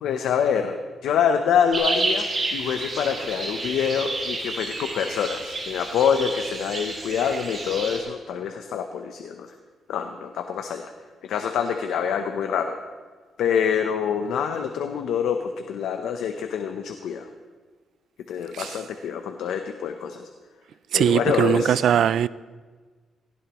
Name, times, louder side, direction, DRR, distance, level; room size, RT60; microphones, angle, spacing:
voice 1, 0.0-0.8 1.0-9.5 9.9-10.9 11.2-12.8 13.4-17.3 18.3-20.3 20.9-21.8, left 7 dB, 90° left, 0.8 m, -26 dB
sound 1, 1.7-8.0, right 2 dB, 40° right, 3.6 m, -30 dB
voice 2, 20.9-22.3, right 9 dB, 75° right, 0.3 m, -20 dB
18.0 x 16.0 x 3.0 m
cardioid pair, 110°, 0 cm